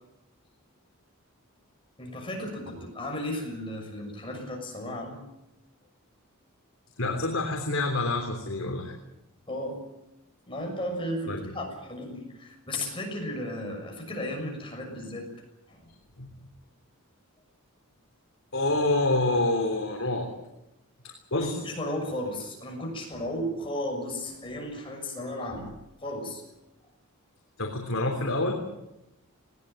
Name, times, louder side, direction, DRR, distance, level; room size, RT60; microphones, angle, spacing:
voice 1, 2.0-5.2 9.5-9.8 10.5-15.3 15.7-15.9 21.3-26.4, left 1 dB, 25° left, 1 dB, 6.5 m, -34 dB
voice 2, 7.0-8.9 11.3-11.5 16.2-16.3 18.5-20.3 21.0-21.6 27.6-28.6, left 2 dB, 60° left, 1 dB, 3.4 m, -27 dB
20.0 x 19.0 x 9.0 m, 0.91 s
head